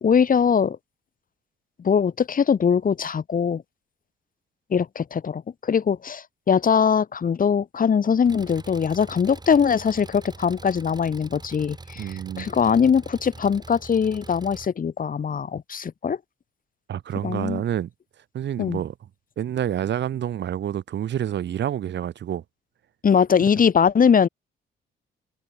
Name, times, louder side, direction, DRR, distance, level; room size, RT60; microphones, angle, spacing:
voice 1, 0.0-0.8 1.8-3.6 4.7-16.2 17.2-17.6 18.6-18.8 23.0-24.3, left 7 dB, 45° left, 2.7 m, -21 dB
Engine, 8.3-14.7, right 3 dB, 20° right, 6.9 m, -43 dB
voice 2, 12.0-12.5 16.9-17.9 18.3-18.9 19.4-22.4, right 10 dB, 65° right, 2.4 m, -28 dB
cardioid pair, 90°, 20 cm